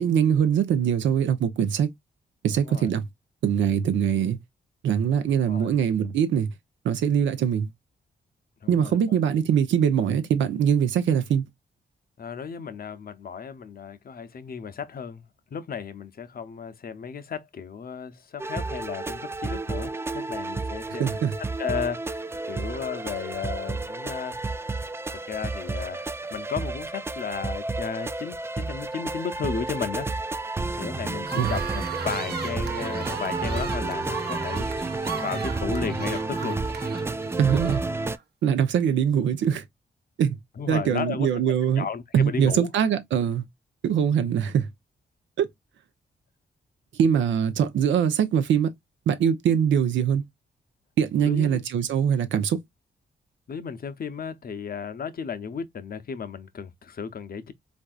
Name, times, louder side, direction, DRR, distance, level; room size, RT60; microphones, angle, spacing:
voice 1, 0.0-1.9 2.4-3.0 3.4-4.4 4.8-6.5 6.8-7.7 8.7-11.5 21.0-21.4 31.3-31.5 37.4-37.8 38.4-39.6 40.2-40.4 40.7-41.8 42.1-43.4 43.8-44.7 45.4-45.5 46.9-48.7 49.1-50.2 51.0-52.6, right 8 dB, 80° right, 0.6 m, -22 dB
voice 2, 8.6-9.2 12.2-15.2 15.5-21.3 21.6-24.4 24.7-24.8 25.1-30.1 30.7-34.7 35.2-36.6 40.6-42.7 51.2-51.6 53.5-57.5, left 6 dB, 50° left, 0.7 m, -34 dB
sound 1, 18.4-38.2, right 3 dB, 15° right, 0.3 m, -31 dB
sound 2, 31.2-38.2, right 6 dB, 60° right, 0.9 m, -37 dB
3.4 x 2.6 x 2.3 m
cardioid pair, 60°, 19 cm